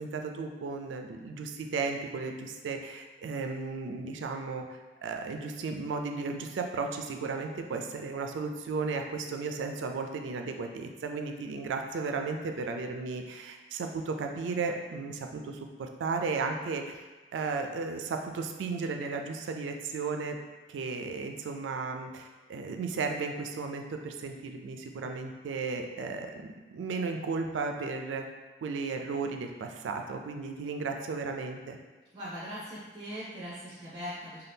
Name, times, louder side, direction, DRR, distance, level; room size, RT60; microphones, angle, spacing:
voice 1, 0.0-17.0 17.3-20.4 20.7-28.2 28.6-31.8, right 4 dB, 85° right, 4 dB, 0.3 m, -34 dB
voice 2, 32.1-34.5, equal, 25° right, -8 dB, 0.5 m, -40 dB
2.7 x 2.2 x 3.4 m, 1.3 s
head